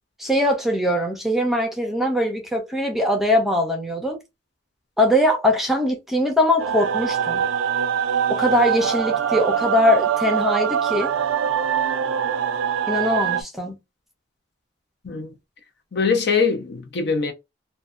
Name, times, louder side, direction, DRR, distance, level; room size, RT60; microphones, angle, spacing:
voice 1, 0.2-4.2 5.0-7.4 8.3-11.1 12.9-13.8, left 1 dB, ahead, 0.5 m, -21 dB
sound 1, 6.6-13.4, right 8 dB, 85° right, 0.3 m, -23 dB
voice 2, 15.9-17.3, left 5 dB, 60° left, 0.6 m, -22 dB
2.5 x 2.2 x 2.4 m
head